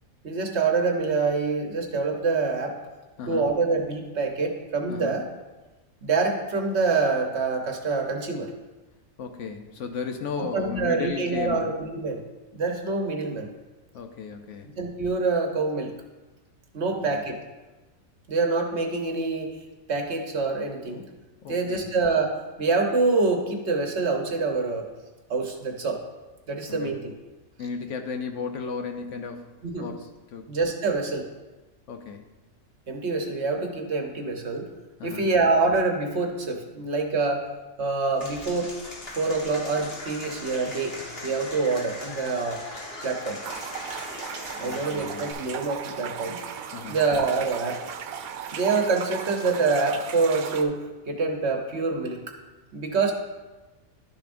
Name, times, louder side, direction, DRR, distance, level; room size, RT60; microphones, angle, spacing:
voice 1, 0.2-2.8 3.3-5.2 6.0-8.5 10.4-12.2 12.5-13.5 14.8-15.9 16.7-17.4 18.3-19.6 19.9-21.1 21.5-24.9 25.3-26.0 26.5-27.0 29.6-29.9 30.5-31.3 32.9-34.7 35.0-37.5 37.8-38.7 39.2-41.0 41.2-42.6 43.0-43.4 44.6-46.4 46.9-47.8 48.5-52.2 52.7-53.1, right 4 dB, 55° right, 3 dB, 1.1 m, -26 dB
voice 2, 3.2-3.5 4.9-5.2 9.2-11.7 13.9-14.7 16.9-17.2 21.4-21.9 26.7-27.0 27.6-30.6 31.9-32.3 35.0-35.3 44.6-45.3 46.7-47.0, left 5 dB, 65° left, 5 dB, 0.9 m, -35 dB
Applause / Crowd, 38.2-45.3, left 1 dB, 45° left, 1.5 m, -39 dB
sound 1, 43.4-50.6, right 8 dB, 90° right, 1.1 m, -36 dB
12.0 x 6.9 x 2.5 m, 1.2 s
omnidirectional pair, 1.5 m